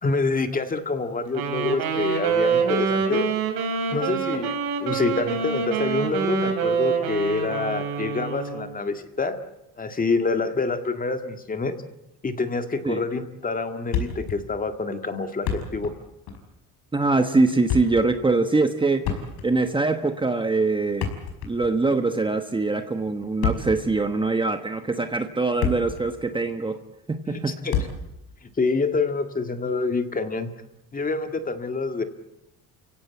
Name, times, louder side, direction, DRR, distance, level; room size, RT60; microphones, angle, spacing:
voice 1, 0.0-3.3 3.9-9.4 9.8-11.8 12.2-15.9 27.3-27.9 28.6-30.5 30.9-32.0, left 3 dB, 20° left, 7 dB, 2.0 m, -27 dB
Wind instrument woodwind instrument, 1.3-8.8, right 6 dB, 70° right, 5.0 m, -26 dB
Thump thud, 13.9-14.4 14.7-14.8 15.3-16.0 16.3-16.5 17.4-18.1 19.0-19.7 20.8-21.8 23.2-23.9 24.6-24.7 25.3-26.1 26.3-26.5 27.7-28.1, left 7 dB, 85° left, 5.4 m, -28 dB
voice 2, 16.9-19.0 19.4-21.1 21.4-26.8 27.1-27.6, right 3 dB, 15° right, 7 dB, 1.2 m, -23 dB
30.0 x 16.5 x 8.3 m, 0.90 s
cardioid pair, 135°, 38 cm